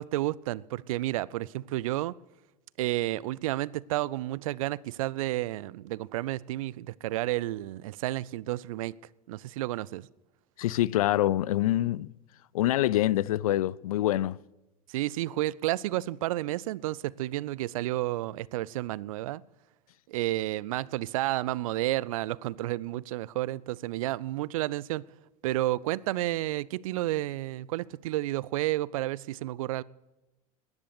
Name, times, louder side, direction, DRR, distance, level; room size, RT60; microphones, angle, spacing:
voice 1, 0.0-2.2 2.8-8.9 9.3-10.1 14.9-19.4 20.1-25.1 25.4-29.8, right 16 dB, 60° right, 0.5 m, -31 dB
voice 2, 10.6-12.1 12.5-14.4, left 14 dB, 65° left, 0.5 m, -25 dB
19.5 x 10.5 x 6.6 m
figure-of-eight pair, 80°, 20 cm